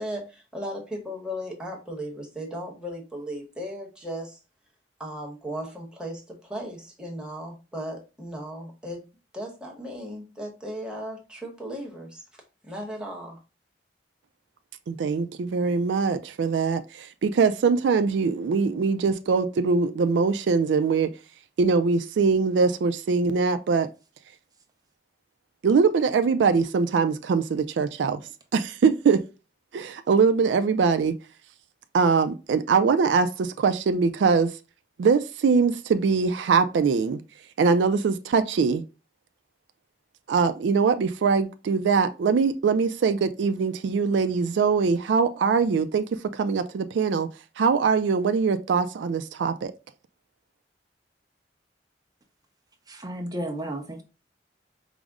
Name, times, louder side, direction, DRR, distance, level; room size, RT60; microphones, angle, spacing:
voice 1, 0.0-4.4 5.0-9.0 9.3-12.2 12.6-13.4, equal, 5° right, 1.0 m, -36 dB
voice 2, 14.9-21.1 21.6-23.9 25.6-28.2 28.5-29.2 29.7-31.1 31.9-34.5 35.0-37.2 37.6-38.8 40.3-46.0 46.3-47.3 47.6-49.7, right 5 dB, 85° right, 0.4 m, -22 dB
voice 3, 52.9-54.0, right 1 dB, 20° right, 0.7 m, -33 dB
4.9 x 2.0 x 3.5 m
head